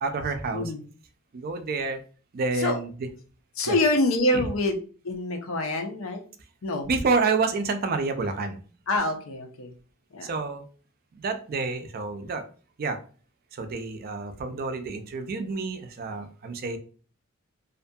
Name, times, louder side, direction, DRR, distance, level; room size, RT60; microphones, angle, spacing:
voice 1, 0.0-0.7 1.3-2.0 2.3-2.9 3.7-3.8 4.3-4.4 6.9-8.6 10.2-10.6 11.1-12.4 12.8-13.0 13.5-16.8, right 4 dB, 45° right, 8 dB, 0.4 m, -28 dB
voice 2, 3.6-4.8 5.0-6.2 6.6-6.9 8.9-9.7 10.1-10.3, left 2 dB, 90° left, 5 dB, 0.6 m, -26 dB
2.4 x 2.2 x 2.6 m, 0.40 s
head